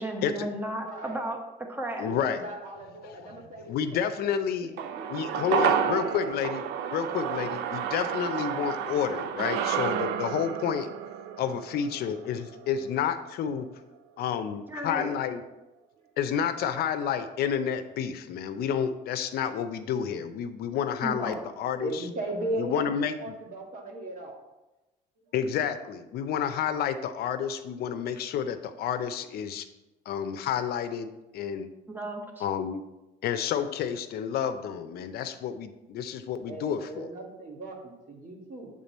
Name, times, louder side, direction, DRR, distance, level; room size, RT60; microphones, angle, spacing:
voice 1, 0.0-1.4 1.7-2.1 14.7-15.1 21.0-21.5 31.9-32.4, right 1 dB, 10° right, 3 dB, 1.0 m, -34 dB
voice 2, 0.8-1.2 2.0-4.0 4.6-5.8 21.8-24.4 36.5-38.8, right 1 dB, 50° right, 0 dB, 1.7 m, -37 dB
voice 3, 2.0-2.4 3.0-3.4 3.7-4.7 5.1-6.6 6.9-10.9 11.4-13.7 14.2-15.4 16.2-22.0 22.6-23.3 25.3-29.6 30.1-31.7 32.4-32.8 33.2-37.1, left 8 dB, 65° left, 9 dB, 0.5 m, -30 dB
sound 1, 4.8-13.3 13.6-13.7, right 8 dB, 80° right, 0.4 m, -31 dB
7.5 x 3.7 x 4.1 m, 1.0 s
cardioid pair, 110°, 17 cm